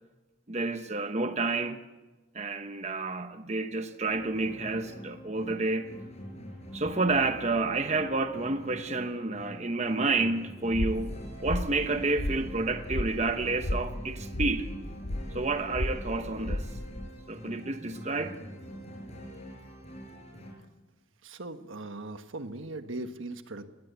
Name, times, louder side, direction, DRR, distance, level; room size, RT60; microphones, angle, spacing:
voice 1, 0.5-1.8 2.3-5.9 6.7-11.1 11.4-14.7 15.3-16.7 17.3-18.4, right 3 dB, 35° right, 0.9 m, -29 dB
sound 1, 4.1-20.5, equal, 35° left, 5.9 m, -45 dB
sound 2, 10.7-17.1, left 1 dB, 90° left, 1.2 m, -34 dB
voice 2, 21.2-23.7, right 2 dB, 85° right, 1.4 m, -39 dB
19.5 x 18.5 x 8.3 m
head